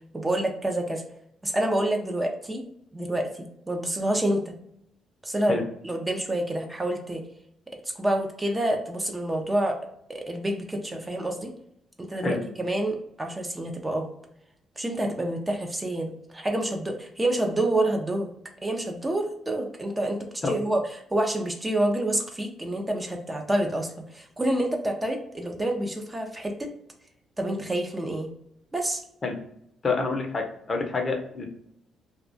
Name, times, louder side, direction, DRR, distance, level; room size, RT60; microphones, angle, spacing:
voice 1, 0.1-1.0 1.4-2.6 2.9-4.5 5.2-7.2 7.8-9.8 10.1-11.5 12.0-14.1 14.8-18.3 18.6-20.8 21.1-26.7 27.4-28.3 28.7-29.0, right 1 dB, 20° right, 3 dB, 0.4 m, -28 dB
voice 2, 29.8-31.5, left 3 dB, 40° left, 3 dB, 0.5 m, -27 dB
2.3 x 2.1 x 2.5 m, 0.73 s
cardioid pair, 90°, 0 cm